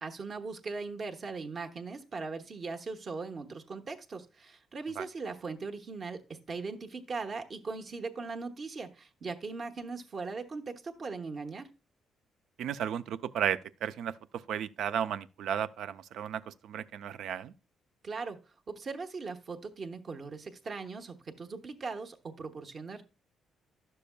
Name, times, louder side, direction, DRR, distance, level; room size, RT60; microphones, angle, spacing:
voice 1, 0.0-6.2 6.5-11.7 18.0-18.4 18.7-23.0, right 4 dB, 45° right, 1.0 m, -39 dB
voice 2, 12.6-17.5, right 9 dB, 75° right, 0.4 m, -34 dB
11.0 x 6.8 x 2.2 m
cardioid pair, 90°, 0 cm